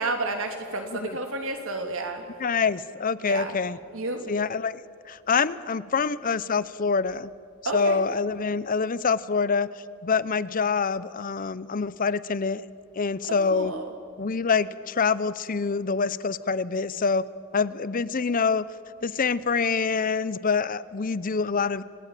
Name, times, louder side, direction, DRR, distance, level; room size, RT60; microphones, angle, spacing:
voice 1, 0.0-2.2 3.2-3.5 3.9-4.3 7.6-8.0 13.5-13.9, right 2 dB, 65° right, 5 dB, 3.1 m, -30 dB
voice 2, 2.4-3.8 4.3-4.8 5.1-7.3 7.7-9.7 10.0-12.6 13.0-13.7 14.2-17.2 17.5-18.7 19.0-21.8, left 5 dB, 40° left, 17 dB, 0.6 m, -26 dB
27.5 x 17.5 x 9.1 m, 2.2 s
head